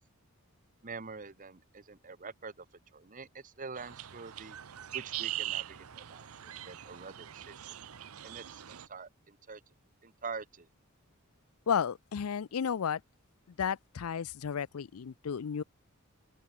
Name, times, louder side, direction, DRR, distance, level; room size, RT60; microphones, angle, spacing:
voice 1, 0.8-2.7 2.9-4.6 4.9-6.3 6.6-7.8 8.2-9.6 10.0-10.7, right 4 dB, 35° right, 1.0 m, -45 dB
Magic Hedge Bird Sanctuary, 3.8-8.9, right 13 dB, 80° right, 0.8 m, -41 dB
voice 2, 11.7-13.0 13.6-15.6, left 7 dB, 80° left, 0.5 m, -33 dB
open air
head